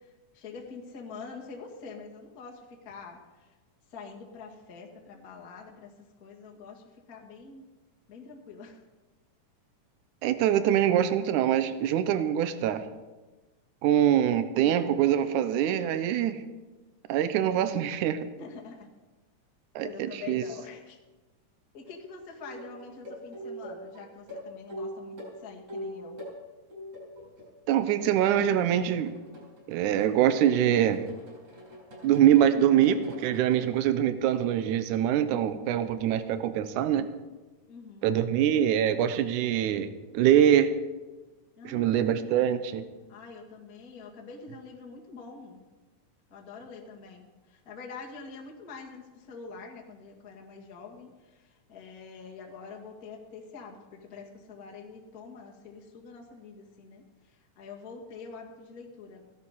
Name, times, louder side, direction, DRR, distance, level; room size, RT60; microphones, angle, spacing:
voice 1, 0.3-3.2 3.9-5.9 6.2-7.6 8.1-8.8 18.4-18.9 19.8-21.0 21.7-26.2 37.7-38.1 41.6-42.3 43.1-45.6 46.3-51.4 51.7-57.0 57.6-59.2, left 4 dB, 35° left, -1 dB, 1.8 m, -45 dB
voice 2, 10.2-12.8 13.8-16.4 17.1-18.3 19.8-20.4 27.7-29.1 29.7-31.0 32.0-37.1 38.0-39.9 40.1-40.8 41.6-42.8, right 10 dB, 80° right, 11 dB, 2.3 m, -24 dB
sound 1, 21.8-22.0 22.4-26.4 26.7-27.5 27.8-33.8 34.3-34.7 35.8-35.9, equal, 60° right, 6.3 m, -43 dB
15.5 x 11.5 x 5.6 m, 1.2 s
omnidirectional pair, 3.6 m